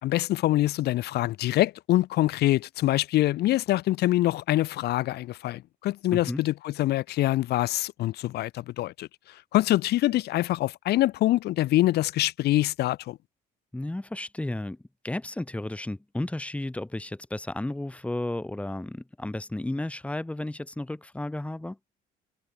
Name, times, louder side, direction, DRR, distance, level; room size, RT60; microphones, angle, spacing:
voice 1, 0.0-9.1 9.5-13.2, left 15 dB, 75° left, 2.6 m, -25 dB
voice 2, 13.7-14.8 15.0-21.8, left 1 dB, 5° left, 2.5 m, -33 dB
cardioid pair, 110°, 17 cm